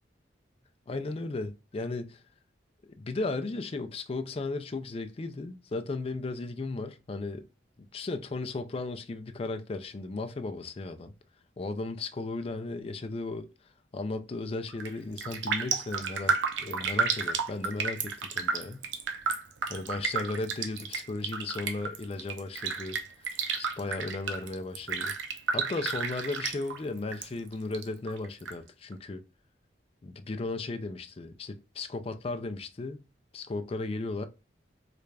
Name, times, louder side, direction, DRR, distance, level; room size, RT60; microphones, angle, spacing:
voice 1, 0.9-2.2 2.8-7.4 7.9-11.1 11.6-13.5 13.9-18.9 19.7-25.1 25.5-29.2 30.0-33.0 33.3-34.3, left 3 dB, 30° left, 0.4 m, -35 dB
Raindrop, 14.7-14.9 15.2-27.3 27.5-28.5 28.9-29.0, right 5 dB, 80° right, 0.6 m, -32 dB
3.3 x 2.4 x 3.2 m
head